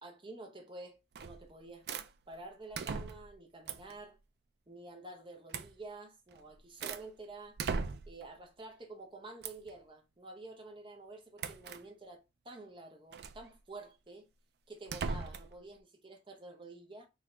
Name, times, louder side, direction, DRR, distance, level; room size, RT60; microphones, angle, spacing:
voice 1, 0.0-1.9 2.3-4.2 4.7-7.6 8.1-14.3 14.7-17.1, right 2 dB, 25° right, 0.8 m, -49 dB
sound 1, 1.1-1.5 1.9-2.1 2.7-3.3 3.7-4.0 5.5-5.7 6.3-7.1 7.6-8.2 9.4-9.7 11.4-11.8 13.1-13.4 14.9-15.5, right 5 dB, 60° right, 0.4 m, -39 dB
3.6 x 2.7 x 3.2 m
head